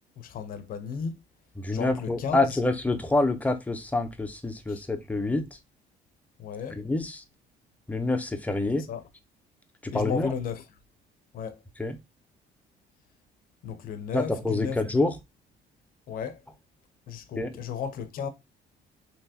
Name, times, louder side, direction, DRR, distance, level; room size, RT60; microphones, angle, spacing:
voice 1, 0.2-1.2 1.7-2.6 4.7-4.8 6.4-6.8 8.9-9.0 9.9-10.7 11.3-11.6 13.6-14.8 16.1-16.4 17.1-18.3, left 7 dB, 55° left, 0.6 m, -34 dB
voice 2, 1.6-5.5 6.8-7.2 7.9-8.8 9.8-10.3 11.8-12.0 14.1-15.2 17.4-17.5, left 2 dB, 10° left, 0.6 m, -27 dB
3.4 x 2.9 x 2.7 m
cardioid pair, 110°, 17 cm